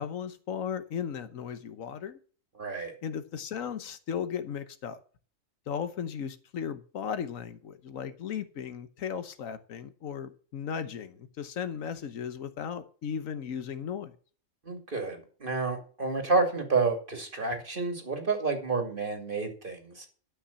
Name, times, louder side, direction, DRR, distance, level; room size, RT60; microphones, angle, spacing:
voice 1, 0.0-2.2 3.0-5.0 5.7-14.2, left 7 dB, 75° left, 11 dB, 1.3 m, -36 dB
voice 2, 2.6-2.9 14.6-20.1, right 3 dB, 40° right, 4 dB, 2.5 m, -29 dB
12.0 x 5.7 x 7.0 m, 0.41 s
omnidirectional pair, 1.4 m